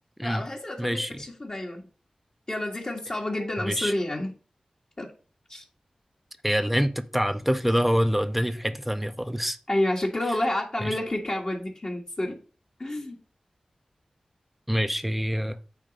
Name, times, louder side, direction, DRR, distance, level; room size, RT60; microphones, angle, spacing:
voice 1, 0.2-1.9 2.5-4.3 5.0-5.1 5.5-5.6 9.7-12.4 12.8-13.2, left 1 dB, 40° left, 1.7 m, -29 dB
voice 2, 0.8-1.2 3.6-3.9 6.4-9.6 10.8-11.0 14.7-15.6, equal, 5° right, 0.7 m, -26 dB
9.0 x 3.1 x 5.1 m
cardioid pair, 45°, 2 cm